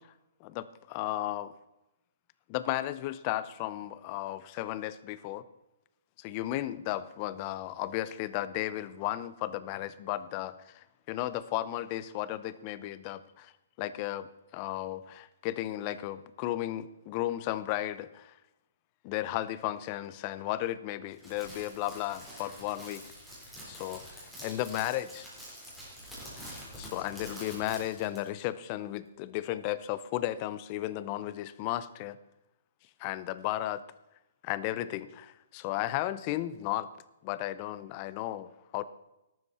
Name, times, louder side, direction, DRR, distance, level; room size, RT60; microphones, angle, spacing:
voice 1, 0.4-1.5 2.5-5.4 6.2-13.5 13.8-18.4 19.0-23.0 23.7-25.3 26.4-32.2 33.0-33.8 34.4-36.9 37.2-38.8, left 14 dB, 25° left, 16 dB, 0.6 m, -34 dB
Crackle, 21.1-28.3, equal, ahead, 3.8 m, -46 dB
13.0 x 12.0 x 4.3 m, 0.97 s
hypercardioid pair, 165°, 0 cm